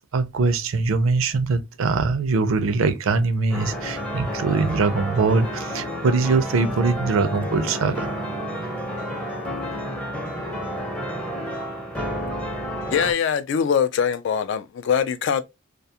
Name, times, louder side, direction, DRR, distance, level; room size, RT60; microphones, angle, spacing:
voice 1, 0.1-8.1, right 4 dB, 80° right, 0.4 m, -22 dB
sound 1, 3.5-13.1, equal, 5° left, 0.5 m, -30 dB
voice 2, 12.9-15.4, left 7 dB, 65° left, 0.3 m, -22 dB
2.3 x 2.2 x 2.7 m
head